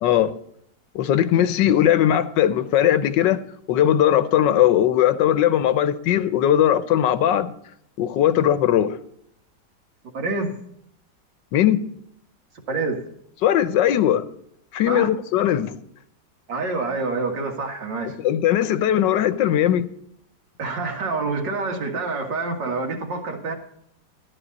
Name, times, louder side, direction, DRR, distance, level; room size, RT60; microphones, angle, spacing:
voice 1, 0.0-0.3 0.9-3.4 3.7-7.5 8.0-9.0 11.5-11.8 13.4-14.2 14.7-15.8 18.2-19.9, left 11 dB, 90° left, 1.4 m, -19 dB
voice 2, 10.1-10.6 12.7-13.0 14.9-15.1 16.5-18.2 20.6-23.5, right 3 dB, 90° right, 2.6 m, -27 dB
13.5 x 10.5 x 4.1 m
omnidirectional pair, 1.9 m